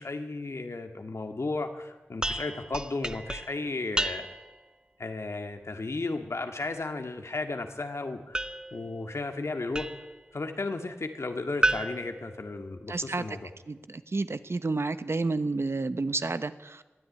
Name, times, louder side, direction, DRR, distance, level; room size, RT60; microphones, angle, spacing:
voice 1, 0.0-4.3 5.0-8.5 8.7-9.9 10.3-13.5, left 3 dB, 85° left, 6 dB, 2.0 m, -34 dB
sound 1, 2.2-4.6 8.3-10.2 11.6-13.1, right 1 dB, 20° right, 0.9 m, -33 dB
voice 2, 12.9-13.3 13.7-16.8, right 3 dB, 70° right, 12 dB, 1.0 m, -30 dB
21.5 x 13.5 x 9.8 m, 1.2 s
wide cardioid pair, 65°, 5 cm